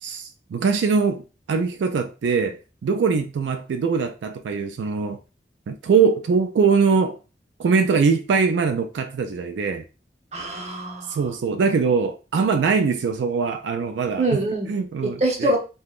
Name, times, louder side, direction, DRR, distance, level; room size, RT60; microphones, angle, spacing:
voice 1, 0.0-5.2 5.7-7.2 7.6-9.8 11.1-14.2 14.7-15.6, right 5 dB, 90° right, 0.3 m, -22 dB
voice 2, 10.3-11.2 14.2-14.7 15.0-15.6, right 1 dB, 40° right, 0.9 m, -24 dB
3.4 x 2.2 x 2.4 m
head